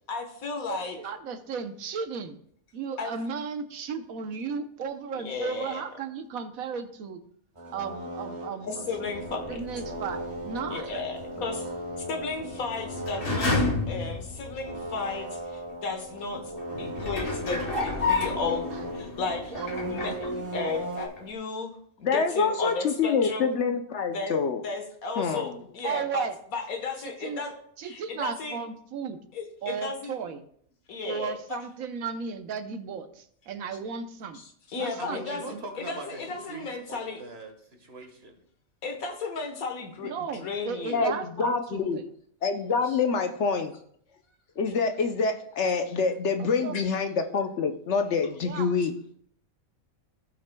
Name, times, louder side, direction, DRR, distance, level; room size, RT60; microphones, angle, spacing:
voice 1, 0.1-1.0 3.0-3.1 5.1-5.8 8.6-9.6 10.7-11.6 12.1-16.4 16.8-19.5 19.8-21.7 22.0-23.5 24.1-24.3 24.6-27.5 27.8-28.6 29.3-30.1 30.9-31.4 34.7-37.2 38.8-41.0, left 4 dB, 85° left, 4 dB, 1.7 m, -34 dB
voice 2, 0.7-2.4 2.7-7.2 7.7-8.9 9.5-11.0 19.5-19.7 25.8-26.4 27.0-27.4 27.8-29.2 29.6-30.4 31.0-34.4 34.8-35.6 40.0-42.0 46.6-46.7 48.4-48.7, right 6 dB, 80° right, 9 dB, 1.2 m, -35 dB
sound 1, 7.5-19.1 19.5-21.1, right 1 dB, 20° right, 1.4 m, -37 dB
sound 2, 9.0-15.1 15.7-15.8 16.6-20.9 21.2-21.3, left 3 dB, 45° left, 1.5 m, -32 dB
voice 3, 22.0-24.6 25.2-25.6 40.9-42.0 42.4-43.7 44.6-49.0, left 5 dB, 60° left, 6 dB, 0.9 m, -26 dB
voice 4, 35.0-38.3, right 2 dB, 50° right, 3 dB, 1.6 m, -42 dB
15.5 x 6.1 x 2.2 m, 0.64 s
omnidirectional pair, 1.5 m